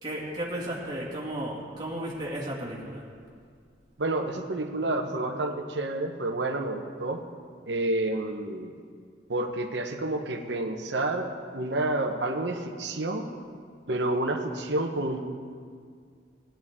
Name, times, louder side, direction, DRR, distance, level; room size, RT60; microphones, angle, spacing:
voice 1, 0.0-3.0, right 1 dB, 20° right, -7 dB, 2.2 m, -34 dB
voice 2, 4.0-7.2 7.7-8.8 9.3-13.3 13.9-15.2, right 2 dB, 65° right, 5 dB, 1.0 m, -29 dB
17.0 x 10.0 x 3.7 m, 2.1 s
head